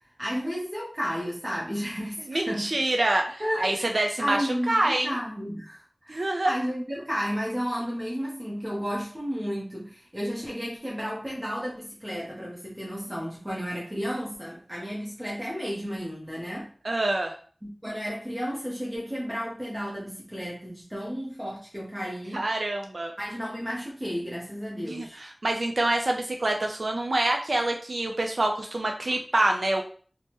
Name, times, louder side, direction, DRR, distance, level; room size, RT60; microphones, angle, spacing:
voice 1, 0.0-2.7 3.4-16.7 17.6-22.4 23.2-25.2, equal, 20° right, -4 dB, 0.8 m, -33 dB
voice 2, 2.3-5.1 6.1-6.5 16.8-17.3 22.3-23.1 24.9-29.8, right 1 dB, 70° right, 2 dB, 0.4 m, -26 dB
3.3 x 2.0 x 2.9 m, 0.43 s
wide cardioid pair, 45°, 0 cm